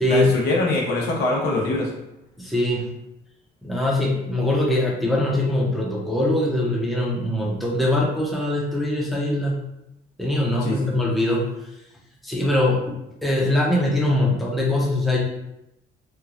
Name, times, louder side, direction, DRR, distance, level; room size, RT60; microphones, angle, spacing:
voice 1, 0.1-1.9 10.6-10.9, left 2 dB, 80° left, -3 dB, 0.8 m, -23 dB
voice 2, 2.4-2.9 3.6-9.6 10.2-11.4 12.2-12.8 13.2-15.2, left 1 dB, ahead, -4 dB, 0.6 m, -22 dB
3.0 x 2.2 x 2.5 m, 0.85 s
cardioid pair, 110°, 17 cm